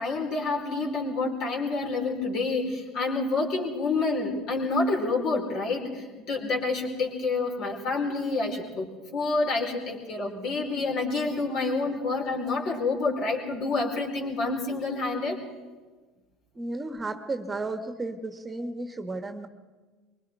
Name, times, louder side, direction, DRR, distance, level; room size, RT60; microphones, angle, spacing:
voice 1, 0.0-15.4, left 3 dB, 50° left, 1 dB, 4.6 m, -28 dB
voice 2, 16.5-19.5, right 2 dB, 20° right, 7 dB, 1.6 m, -33 dB
24.5 x 23.0 x 4.7 m, 1.3 s
figure-of-eight pair, 65°, 0 cm